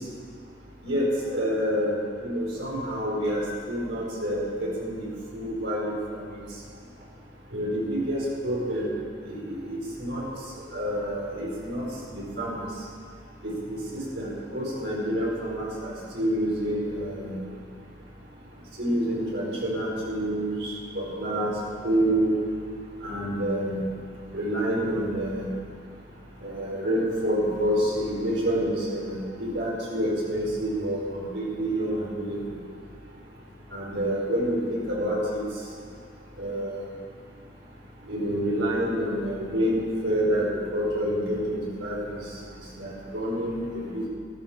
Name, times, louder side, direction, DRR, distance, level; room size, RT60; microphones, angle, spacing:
voice 1, 0.8-5.1 5.3-6.0 6.3-6.4 7.5-8.9 9.3-10.2 10.7-11.9 12.1-12.6 13.4-17.4 18.8-21.5 21.8-22.3 23.0-23.8 24.3-25.5 26.4-32.6 33.7-35.4 36.4-36.8 38.1-42.2 42.8-44.1, equal, 75° right, -3 dB, 4.9 m, -28 dB
13.5 x 13.0 x 7.4 m, 2.3 s
head